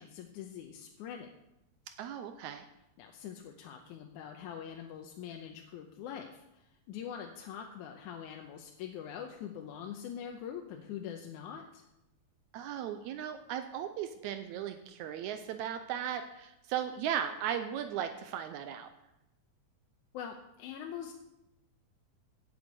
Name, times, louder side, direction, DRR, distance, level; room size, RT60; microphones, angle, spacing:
voice 1, 0.0-1.3 3.0-11.8 20.1-21.1, left 8 dB, 90° left, 3 dB, 2.2 m, -44 dB
voice 2, 2.0-2.7 12.5-18.9, right 9 dB, 80° right, 8 dB, 2.0 m, -37 dB
8.3 x 7.9 x 8.2 m, 0.90 s
omnidirectional pair, 3.4 m